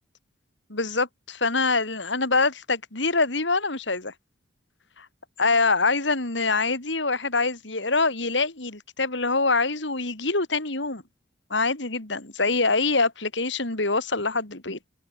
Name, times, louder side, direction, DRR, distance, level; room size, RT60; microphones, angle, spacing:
voice 1, 0.7-4.1 5.0-5.1 5.4-11.0 11.5-14.8, left 3 dB, 70° left, 3.5 m, -25 dB
head